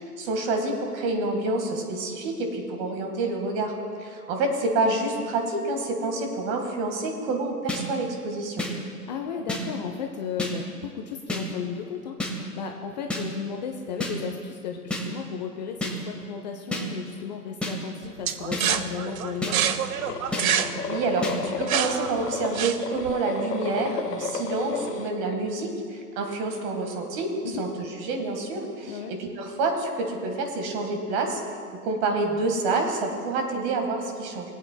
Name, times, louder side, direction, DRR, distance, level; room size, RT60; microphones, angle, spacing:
voice 1, 0.2-3.7 4.0-8.7 20.9-27.7 28.0-31.4 31.7-34.5, right 3 dB, 40° right, 4 dB, 1.6 m, -28 dB
sound 1, 7.7-7.8 8.6-8.7 9.5-9.6 10.4-10.5 11.3-11.4 12.2-12.3 13.1-13.2 14.0-14.1 14.9-15.0 15.8-15.9 16.7-16.8 17.6-17.7 18.5-18.6 19.4-19.5 20.3-20.4 21.2-21.3, left 2 dB, ahead, 1.2 m, -29 dB
voice 2, 9.1-19.7 27.4-27.6 28.9-29.1, left 7 dB, 30° left, 4 dB, 0.4 m, -34 dB
sound 2, 18.3-23.1, right 9 dB, 65° right, 0.7 m, -27 dB
sound 3, 20.0-25.1, left 5 dB, 80° left, 0.9 m, -33 dB
21.5 x 8.3 x 2.2 m, 2.2 s
hypercardioid pair, 115°, 47 cm